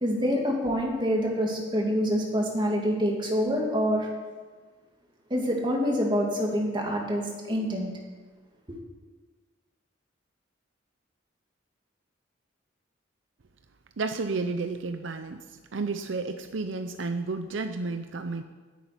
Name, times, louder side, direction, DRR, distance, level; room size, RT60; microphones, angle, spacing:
voice 1, 0.0-4.1 5.3-7.9, equal, 25° right, -1 dB, 2.5 m, -26 dB
voice 2, 14.0-15.4 15.7-18.4, right 3 dB, 75° right, 8 dB, 0.7 m, -31 dB
10.0 x 8.5 x 9.6 m, 1.4 s
head